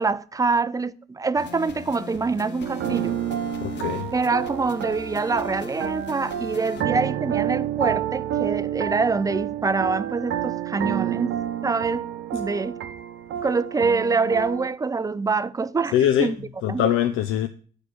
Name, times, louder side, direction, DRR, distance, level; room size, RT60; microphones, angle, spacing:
voice 1, 0.0-3.2 4.1-11.4 11.6-12.1 12.3-12.8 13.4-16.9, right 4 dB, 15° right, 0.3 m, -25 dB
sound 1, 1.3-6.8, left 5 dB, 65° left, 0.9 m, -40 dB
sound 2, 2.6-14.7, right 11 dB, 75° right, 0.8 m, -29 dB
voice 2, 3.6-4.1 15.9-16.3 16.6-17.5, left 10 dB, 80° left, 0.5 m, -22 dB
5.9 x 4.9 x 6.5 m
cardioid pair, 90°, 20 cm